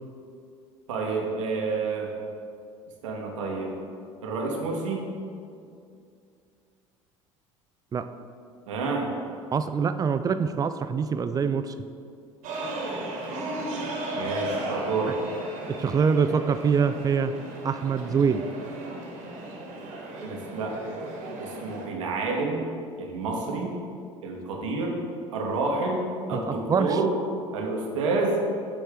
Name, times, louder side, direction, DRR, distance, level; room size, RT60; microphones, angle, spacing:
voice 1, 0.9-2.1 3.0-3.7 4.2-5.1 8.7-9.1 14.1-15.2 20.2-20.8 21.4-22.6 23.0-23.7 24.2-25.0 25.3-27.2 27.5-28.4, right 3 dB, 75° right, 0 dB, 1.1 m, -29 dB
voice 2, 9.5-11.7 15.7-17.3 17.6-18.4 26.5-27.0, right 6 dB, 25° right, 10 dB, 0.4 m, -24 dB
sound 1, 12.4-21.9, right 1 dB, 55° right, 1.4 m, -35 dB
8.5 x 3.2 x 5.1 m, 2.4 s
figure-of-eight pair, 65°, 16 cm